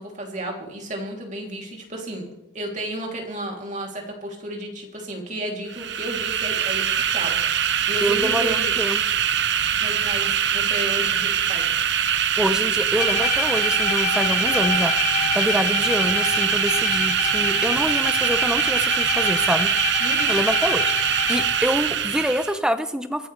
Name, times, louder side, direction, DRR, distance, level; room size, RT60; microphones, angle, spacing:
voice 1, 0.0-2.3 2.5-8.8 9.8-11.7 20.0-20.4, right 1 dB, 40° right, 0 dB, 3.0 m, -33 dB
sound 1, 5.7-22.6, right 9 dB, 60° right, 0.8 m, -23 dB
voice 2, 8.0-9.0 12.4-14.9 15.3-19.7 20.3-20.8 21.3-23.3, equal, 5° right, 9 dB, 0.7 m, -25 dB
Bowed string instrument, 13.0-21.7, left 9 dB, 35° left, 0.4 m, -28 dB
25.0 x 11.5 x 3.3 m, 0.95 s
head